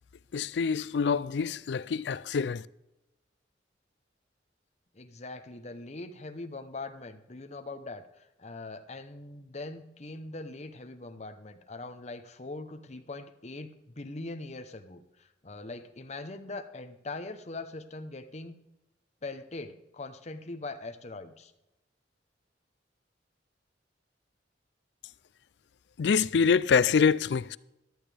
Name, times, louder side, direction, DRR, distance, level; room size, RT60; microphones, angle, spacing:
voice 1, 0.3-2.7 26.0-27.6, left 6 dB, 70° left, 0.4 m, -25 dB
voice 2, 4.9-18.6 19.2-21.5, left 2 dB, 40° left, 0.9 m, -42 dB
14.0 x 12.0 x 3.4 m
head